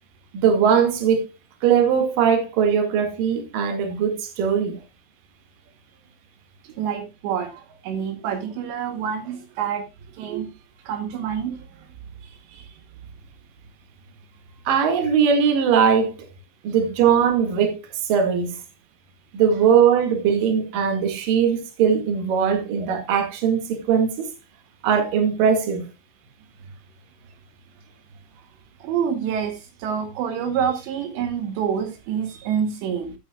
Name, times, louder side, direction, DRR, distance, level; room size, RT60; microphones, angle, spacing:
voice 1, 0.3-1.3 1.6-4.8 14.7-16.1 16.6-18.6 19.3-24.3 24.8-25.9, right 7 dB, 55° right, 3.3 m, -20 dB
voice 2, 6.6-9.8 10.1-10.5 10.9-11.9 12.2-12.7 28.8-33.2, right 8 dB, 80° right, 3.3 m, -27 dB
15.0 x 9.0 x 2.3 m
omnidirectional pair, 5.1 m